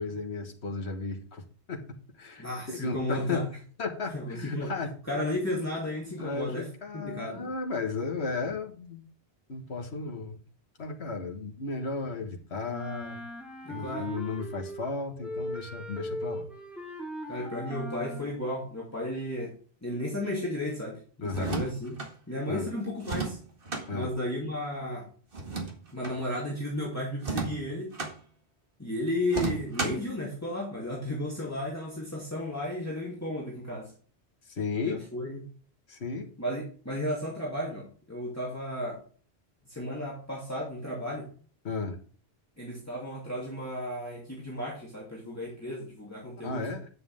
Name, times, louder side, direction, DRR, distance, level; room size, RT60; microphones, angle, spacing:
voice 1, 0.0-1.8 2.2-3.5 3.8-5.0 6.2-9.0 9.5-10.4 10.8-13.2 13.7-16.5 21.2-21.6 22.5-22.7 23.9-24.1 34.4-35.0 35.9-36.3 41.6-42.0 46.4-46.9, left 4 dB, 75° left, 3 dB, 1.8 m, -34 dB
voice 2, 2.4-3.4 4.1-4.7 5.1-6.7 6.9-7.5 13.6-14.1 17.3-19.5 19.8-22.0 22.3-23.4 23.9-25.1 25.9-27.9 28.8-33.9 34.8-35.4 36.4-39.0 39.7-41.3 42.6-46.6, left 1 dB, 15° left, -5 dB, 2.7 m, -33 dB
Wind instrument woodwind instrument, 12.7-14.9 15.2-18.3, equal, ahead, 1.9 m, -39 dB
sound 1, 21.3-22.1 23.0-23.9 25.3-26.2 27.2-28.1 29.3-30.1, right 3 dB, 55° right, 2.2 m, -33 dB
9.9 x 7.5 x 3.6 m, 0.42 s
omnidirectional pair, 1.1 m